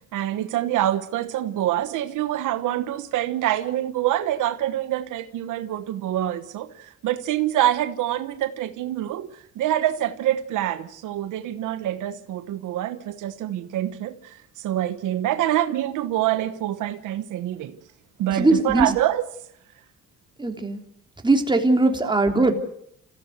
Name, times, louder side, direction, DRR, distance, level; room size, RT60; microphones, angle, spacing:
voice 1, 0.1-17.8 18.2-19.4 22.0-22.1, right 13 dB, 85° right, 1.2 m, -26 dB
voice 2, 18.3-18.9 20.4-20.8 21.2-22.5, right 2 dB, 15° right, 3.5 m, -20 dB
27.0 x 15.5 x 8.0 m
cardioid pair, 90°, 30 cm